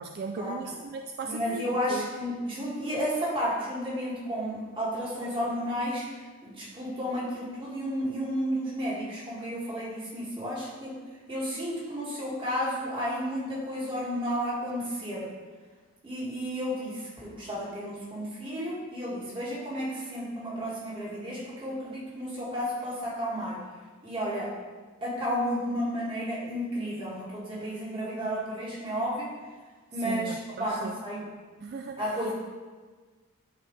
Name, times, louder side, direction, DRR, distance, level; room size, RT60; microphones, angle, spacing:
voice 1, 0.0-2.1 30.0-31.0 31.6-32.2, right 4 dB, 45° right, 6 dB, 0.3 m, -37 dB
voice 2, 1.2-6.1 6.4-11.0 11.3-15.3 16.0-23.6 24.0-24.5 25.0-29.3 29.9-31.2 32.0-32.3, equal, 25° right, -7 dB, 2.2 m, -32 dB
11.0 x 4.9 x 3.3 m, 1.4 s
head